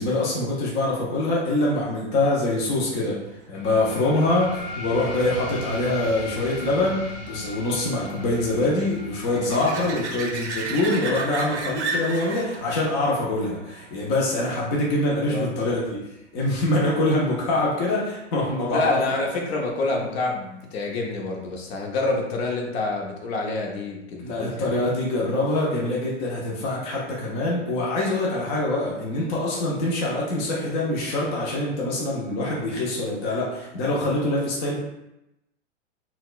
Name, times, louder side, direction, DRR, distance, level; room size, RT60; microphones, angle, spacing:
voice 1, 0.0-3.2 3.5-16.0 16.3-19.0 24.2-34.8, left 2 dB, 20° left, -4 dB, 0.4 m, -24 dB
sound 1, 3.5-14.6, left 2 dB, 70° left, 1.3 m, -38 dB
sound 2, 3.7-15.0 20.6-20.7, right 3 dB, 65° right, 0.6 m, -36 dB
voice 2, 15.2-15.6 18.7-24.7, left 2 dB, 55° left, 0 dB, 0.8 m, -27 dB
4.1 x 2.2 x 2.3 m, 0.89 s
hypercardioid pair, 135°, 37 cm